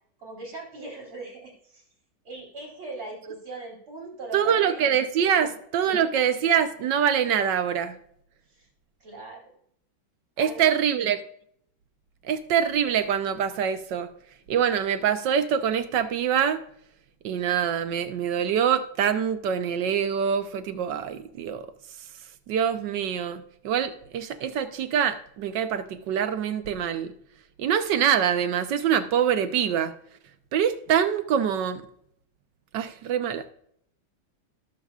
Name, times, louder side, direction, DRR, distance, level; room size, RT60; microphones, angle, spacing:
voice 1, 0.2-1.8 2.2-4.8 5.3-5.5 5.8-6.3 8.5-8.7 9.0-9.4 10.4-10.6, right 3 dB, 90° right, -3 dB, 4.7 m, -40 dB
voice 2, 4.3-8.0 10.4-11.2 12.2-14.1 14.5-16.6 17.2-21.7 22.5-27.1 27.6-29.9 30.5-31.9 32.7-33.4, right 8 dB, 65° right, 10 dB, 1.4 m, -24 dB
18.5 x 6.9 x 2.4 m, 0.68 s
omnidirectional pair, 2.2 m